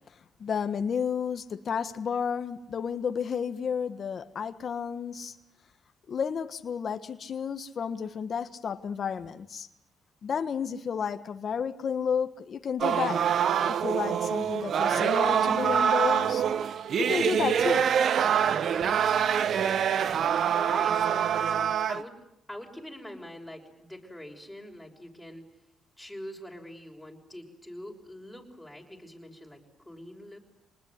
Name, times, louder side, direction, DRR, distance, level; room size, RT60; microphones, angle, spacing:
voice 1, 0.4-5.3 6.1-9.7 10.2-13.2 13.8-16.4 17.0-17.9, left 7 dB, 50° left, 9 dB, 1.5 m, -31 dB
sound 1, 12.8-22.0, right 8 dB, 60° right, 1.1 m, -25 dB
voice 2, 20.2-22.2 22.5-25.4 26.0-29.6 29.8-30.4, left 1 dB, 5° left, 0 dB, 6.1 m, -44 dB
26.5 x 20.0 x 9.7 m, 0.82 s
cardioid pair, 90°, 0 cm